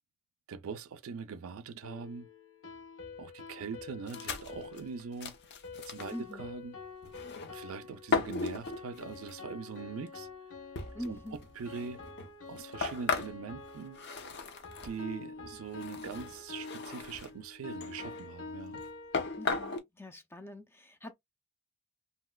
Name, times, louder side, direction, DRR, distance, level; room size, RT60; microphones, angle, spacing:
voice 1, 0.5-2.3 3.2-5.4 5.7-6.8 7.5-10.3 11.0-12.0 12.5-14.0 14.8-18.8, right 5 dB, 80° right, 0.4 m, -42 dB
sound 1, 1.8-19.5, left 4 dB, 75° left, 1.1 m, -47 dB
sound 2, 4.1-6.2 7.0-7.7 8.1-9.3 10.1-10.2 10.8-15.0 15.7-17.3 17.8-18.3 18.8-18.9 19.1-19.8, left 4 dB, 55° left, 0.6 m, -37 dB
voice 2, 6.1-6.5 10.9-11.4 19.4-21.1, left 1 dB, 10° left, 0.4 m, -43 dB
3.1 x 2.8 x 2.2 m
head